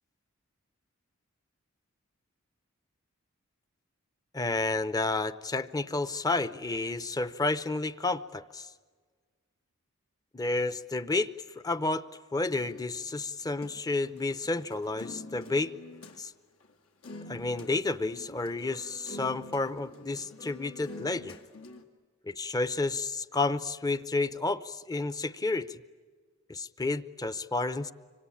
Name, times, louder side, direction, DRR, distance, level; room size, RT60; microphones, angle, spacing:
voice 1, 4.3-8.7 10.3-11.3 11.6-12.0 12.3-15.7 16.2-16.3 17.3-21.4 22.3-25.8 26.5-27.9, left 3 dB, 20° left, 14 dB, 0.7 m, -31 dB
sound 1, 12.4-16.2 16.6-16.7 17.0-17.7 18.0-21.8, left 2 dB, 75° left, 2.3 m, -47 dB
25.5 x 25.5 x 8.6 m, 1.5 s
head